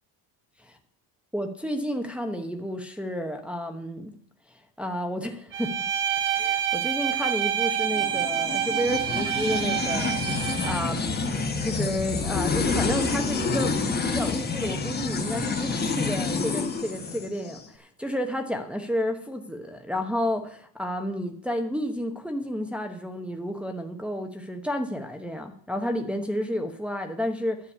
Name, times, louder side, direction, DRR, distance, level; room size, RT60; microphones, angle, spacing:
voice 1, 1.3-4.1 4.8-5.7 6.2-11.2 11.6-13.8 14.0-27.6, equal, 5° right, 3 dB, 0.9 m, -31 dB
Bowed string instrument, 5.5-10.9, right 9 dB, 25° right, 0.7 m, -27 dB
sound 1, 7.9-17.6, left 4 dB, 20° left, 1.2 m, -28 dB
10.0 x 6.8 x 8.3 m, 0.62 s
cardioid pair, 135°, 46 cm